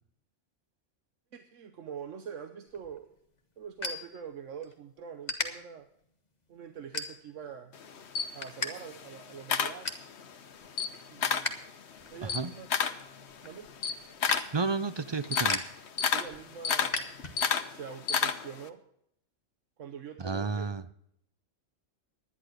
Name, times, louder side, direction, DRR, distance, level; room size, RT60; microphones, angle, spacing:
voice 1, 1.3-3.1 3.6-5.9 6.5-7.7 8.3-9.9 11.1-11.6 12.1-12.7 13.4-13.7 16.1-17.1 17.7-18.8 19.8-20.7, right 7 dB, 80° right, 7 dB, 1.3 m, -44 dB
sound 1, 2.7-4.7 5.2-5.5 6.0-6.3 6.9-7.5 7.9-8.7 9.0-9.1 9.5-10.1 10.6-11.6 11.9-17.7, left 3 dB, 35° left, 1.4 m, -37 dB
Camera, 7.7-10.3 10.7-11.6 11.9-18.7, left 6 dB, 65° left, 1.2 m, -31 dB
voice 2, 12.2-12.5 14.5-15.6 20.2-20.8, right 4 dB, 45° right, 13 dB, 0.3 m, -31 dB
11.0 x 10.0 x 6.4 m, 0.73 s
omnidirectional pair, 1.3 m